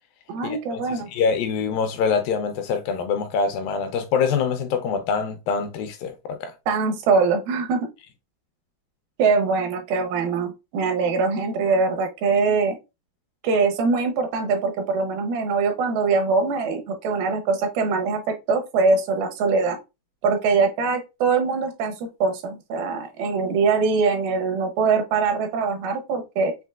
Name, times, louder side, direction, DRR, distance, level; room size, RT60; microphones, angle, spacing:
voice 1, 0.3-1.1 6.7-7.8 9.2-12.8 13.4-19.8 20.2-26.5, right 4 dB, 80° right, 2.6 m, -22 dB
voice 2, 1.1-6.5, left 6 dB, 80° left, 2.2 m, -24 dB
6.5 x 2.6 x 2.4 m
omnidirectional pair, 4.3 m